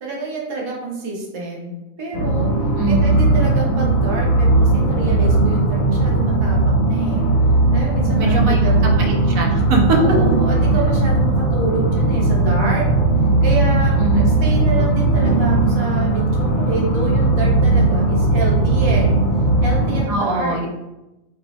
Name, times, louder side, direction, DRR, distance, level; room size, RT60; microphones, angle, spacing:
voice 1, 0.0-2.5 2.8-7.3 7.7-8.7 9.9-12.9 13.4-19.1 19.6-20.6, right 2 dB, 40° right, -3 dB, 0.4 m, -27 dB
sound 1, 2.1-20.0, right 2 dB, 85° left, 1.2 m, -17 dB
voice 2, 2.7-3.2 8.2-8.6 9.1-10.0 14.0-14.3 20.1-20.7, right 3 dB, 80° right, 1 dB, 1.0 m, -22 dB
2.7 x 2.0 x 4.0 m, 0.97 s
omnidirectional pair, 1.4 m